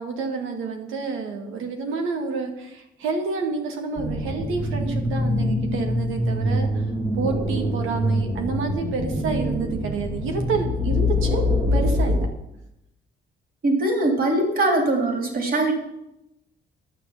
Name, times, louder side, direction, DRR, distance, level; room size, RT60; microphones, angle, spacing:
voice 1, 0.0-6.7 7.2-11.4 11.7-12.3, right 4 dB, 85° right, 3 dB, 2.1 m, -29 dB
sound 1, 4.0-12.3, left 1 dB, 20° right, 1.8 m, -24 dB
voice 2, 13.6-15.7, right 2 dB, 45° right, 3 dB, 3.2 m, -21 dB
11.0 x 6.8 x 7.3 m, 0.86 s
cardioid pair, 90°, 20 cm